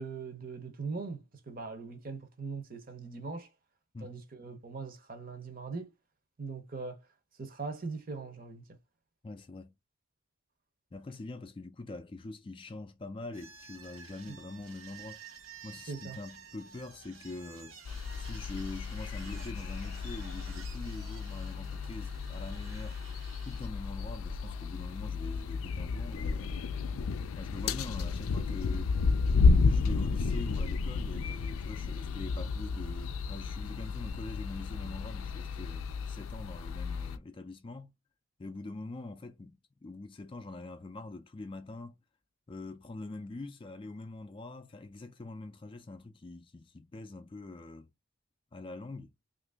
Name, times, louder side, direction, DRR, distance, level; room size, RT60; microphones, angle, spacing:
voice 1, 0.0-3.5 4.0-5.9 6.4-7.0 7.4-8.6 15.9-16.2, right 4 dB, 45° right, 0.7 m, -40 dB
voice 2, 9.2-9.7 10.9-15.2 15.6-17.8 18.2-23.0 23.4-26.6 27.4-29.0 29.6-37.9 38.4-42.0 42.5-47.9 48.5-49.1, left 2 dB, 25° left, 0.3 m, -44 dB
sound 1, 13.3-23.7, right 6 dB, 80° right, 0.8 m, -52 dB
sound 2, 17.9-37.2, left 4 dB, 90° left, 0.4 m, -32 dB
2.9 x 2.6 x 3.4 m
head